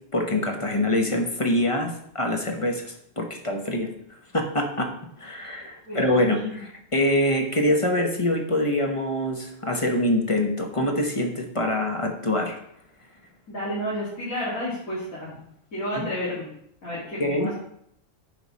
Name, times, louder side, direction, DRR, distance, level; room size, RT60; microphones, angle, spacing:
voice 1, 0.1-3.9 4.3-4.9 5.2-12.6 16.0-16.1 17.2-17.5, left 1 dB, 25° left, 3 dB, 0.9 m, -25 dB
voice 2, 5.8-6.6 13.5-15.4 15.7-16.5 16.8-17.5, equal, 85° left, -9 dB, 2.7 m, -31 dB
9.9 x 4.9 x 4.1 m, 0.72 s
omnidirectional pair, 1.4 m